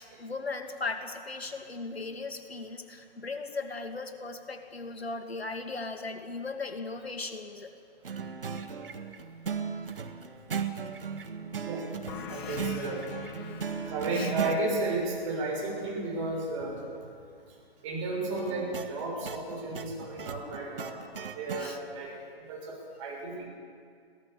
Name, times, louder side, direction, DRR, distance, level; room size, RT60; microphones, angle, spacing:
voice 1, 0.0-7.7 12.3-12.6 14.1-14.3 21.6-21.8, left 3 dB, 75° left, 5 dB, 2.4 m, -37 dB
sound 1, 8.0-14.6 18.4-21.7, right 6 dB, 60° right, 1.6 m, -37 dB
voice 2, 11.4-11.9 12.3-13.0 13.9-16.8 17.8-21.0 21.3-22.1 22.5-23.4, right 2 dB, 30° right, -2 dB, 6.8 m, -33 dB
sound 2, 12.1-17.3, left 9 dB, 25° left, 0.9 m, -45 dB
22.5 x 16.5 x 7.0 m, 2.3 s
figure-of-eight pair, 130°, 31 cm